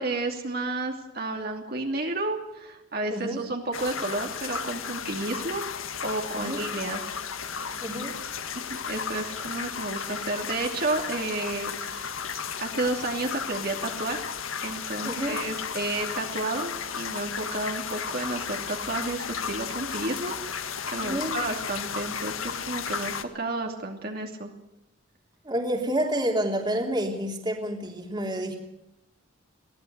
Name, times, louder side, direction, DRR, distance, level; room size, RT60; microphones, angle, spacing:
voice 1, 0.0-5.6 6.0-7.2 8.5-12.2 12.6-14.2 14.6-24.5, right 2 dB, 50° right, 2 dB, 2.8 m, -31 dB
voice 2, 3.1-3.4 6.3-6.6 7.8-8.2 15.0-15.4 21.0-21.4 25.4-28.6, right 1 dB, 20° right, 2 dB, 3.2 m, -29 dB
sound 1, 3.7-23.2, left 7 dB, 90° left, 1.7 m, -34 dB
23.0 x 17.5 x 8.1 m, 0.91 s
head